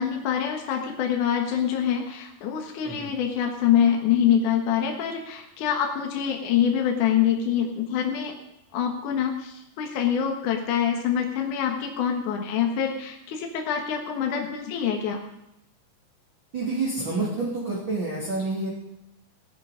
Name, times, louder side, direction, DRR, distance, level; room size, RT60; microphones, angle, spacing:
voice 1, 0.0-8.3 8.7-15.2, left 8 dB, 60° left, 2 dB, 2.7 m, -25 dB
voice 2, 16.5-18.7, right 3 dB, 35° right, -6 dB, 3.2 m, -28 dB
17.0 x 11.0 x 5.1 m, 0.86 s
omnidirectional pair, 4.4 m